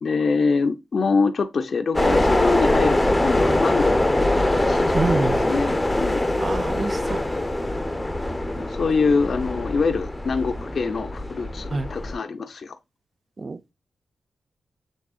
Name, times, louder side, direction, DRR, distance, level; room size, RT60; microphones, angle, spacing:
voice 1, 0.0-4.3 4.7-5.0 5.5-6.2 8.6-12.8, left 4 dB, 60° left, 0.5 m, -24 dB
sound 1, 1.9-12.1, left 1 dB, 15° left, 0.6 m, -23 dB
voice 2, 4.9-5.5 6.4-7.2 11.7-11.9 13.4-13.6, right 3 dB, 45° right, 0.5 m, -26 dB
6.3 x 3.6 x 2.3 m
cardioid pair, 60°, 0 cm